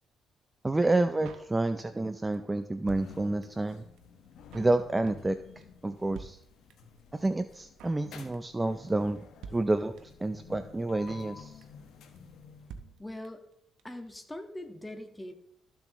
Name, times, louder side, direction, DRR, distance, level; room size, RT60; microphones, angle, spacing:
voice 1, 0.6-3.8 4.5-5.4 5.8-6.4 7.1-9.2 9.5-11.6, right 2 dB, 15° right, 10 dB, 0.5 m, -29 dB
Drum kit, 1.3-2.1 2.3-2.4 2.6-3.7 4.0-4.1 4.3-4.8 5.1-5.4 5.6-5.7 5.9-6.0 6.2-7.0 7.3-7.4 7.5-8.1 8.3-8.6 8.9-9.0 9.2-9.3 9.4-10.3 10.5-10.6 10.8-11.4 11.6-11.9 12.2-12.3 12.4-12.5 12.7-13.5 13.8-13.9 14.1-14.2, right 6 dB, 85° right, 0.8 m, -48 dB
sound 1, 2.9-13.0, left 6 dB, 80° left, 1.4 m, -52 dB
voice 2, 13.0-13.5 13.8-15.3, left 1 dB, 10° left, 5 dB, 1.5 m, -41 dB
13.5 x 6.9 x 3.1 m, 0.75 s
cardioid pair, 90°, 0 cm